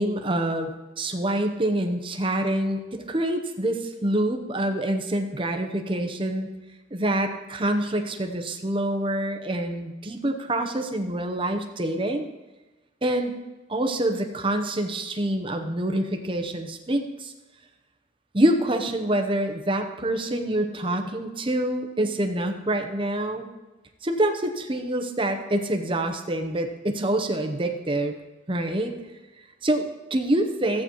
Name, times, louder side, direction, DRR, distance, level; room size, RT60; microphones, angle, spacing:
voice 1, 0.0-6.5 6.9-12.3 13.0-13.3 13.7-17.3 18.3-23.5 24.0-28.2 28.5-28.9 29.6-30.8, right 1 dB, 25° right, 5 dB, 0.8 m, -26 dB
14.5 x 8.6 x 3.1 m, 1.1 s
head